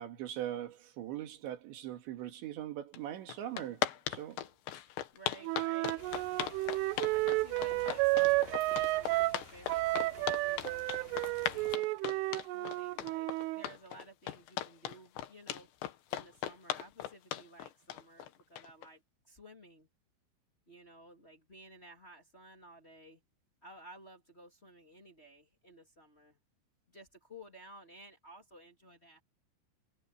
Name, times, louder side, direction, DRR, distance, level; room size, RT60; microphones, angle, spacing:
voice 1, 0.0-4.4, right 12 dB, 65° right, 4.1 m, -41 dB
sound 1, 2.9-3.0 3.3-18.9, left 12 dB, 70° left, 3.3 m, -38 dB
voice 2, 5.1-15.7 16.1-19.9 20.7-23.2 23.6-26.4 26.9-29.2, right 1 dB, 20° left, 1.6 m, -55 dB
Wind instrument woodwind instrument, 5.4-9.4 9.7-13.6, right 21 dB, 85° right, 3.0 m, -32 dB
sound 2, 6.0-11.8, left 4 dB, 50° left, 6.6 m, -53 dB
omnidirectional pair, 5.8 m